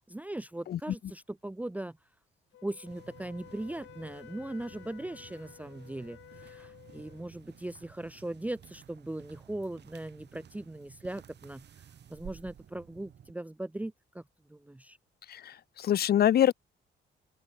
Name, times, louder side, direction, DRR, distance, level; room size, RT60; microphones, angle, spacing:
voice 1, 0.0-2.0 2.6-11.6 12.1-14.2 14.5-15.0, right 1 dB, 5° right, 0.7 m, -39 dB
Wind instrument woodwind instrument, 2.5-7.3, left 14 dB, 80° left, 3.2 m, -53 dB
sound 1, 2.9-13.3, right 9 dB, 60° right, 4.6 m, -54 dB
voice 2, 15.3-16.5, left 10 dB, 50° left, 0.6 m, -25 dB
open air
cardioid pair, 90°, 20 cm